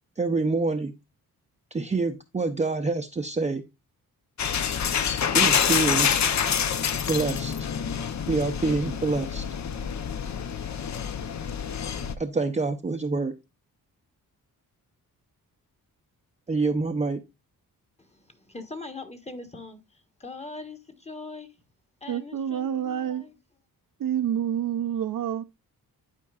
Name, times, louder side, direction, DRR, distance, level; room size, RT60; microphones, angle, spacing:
voice 1, 0.2-0.9 1.7-3.6 5.3-6.1 7.1-7.5 8.3-9.4 12.2-13.3 16.5-17.2, right 3 dB, 20° right, 0.6 m, -26 dB
sound 1, 4.4-12.1, left 7 dB, 50° left, 0.7 m, -27 dB
voice 2, 18.0-21.5 22.0-23.3, left 3 dB, 20° left, 1.2 m, -42 dB
voice 3, 22.1-23.3 24.0-25.4, right 9 dB, 65° right, 0.6 m, -28 dB
11.5 x 4.5 x 2.4 m
cardioid pair, 85°, 36 cm